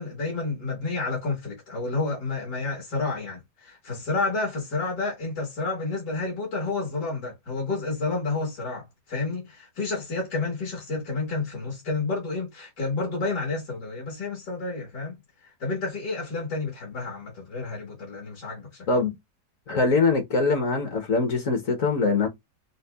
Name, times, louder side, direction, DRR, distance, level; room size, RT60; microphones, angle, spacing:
voice 1, 0.0-18.9, left 3 dB, 80° left, 2.2 m, -30 dB
voice 2, 19.7-22.3, left 3 dB, 60° left, 1.1 m, -23 dB
5.3 x 2.1 x 2.2 m
omnidirectional pair, 1.8 m